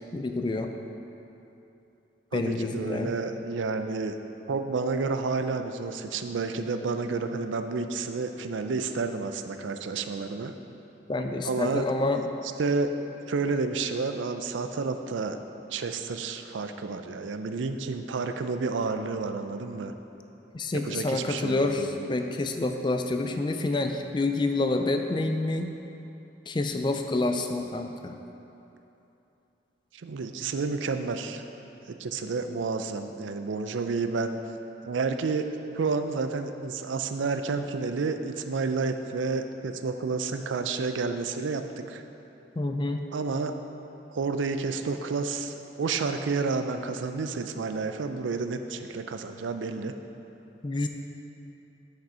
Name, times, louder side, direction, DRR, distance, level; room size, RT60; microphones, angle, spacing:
voice 1, 0.1-0.7 2.3-3.1 11.1-12.3 20.5-25.7 26.5-28.2 42.6-43.1 50.6-50.9, left 2 dB, 25° left, 5 dB, 0.4 m, -28 dB
voice 2, 2.3-4.2 4.5-10.5 11.4-11.9 12.4-12.9 13.3-15.4 15.7-19.9 20.7-22.1 29.9-31.4 31.9-34.4 34.8-35.5 35.7-42.0 43.1-43.5 44.1-49.9, right 4 dB, 85° right, 8 dB, 0.5 m, -30 dB
8.5 x 6.2 x 4.3 m, 3.0 s
head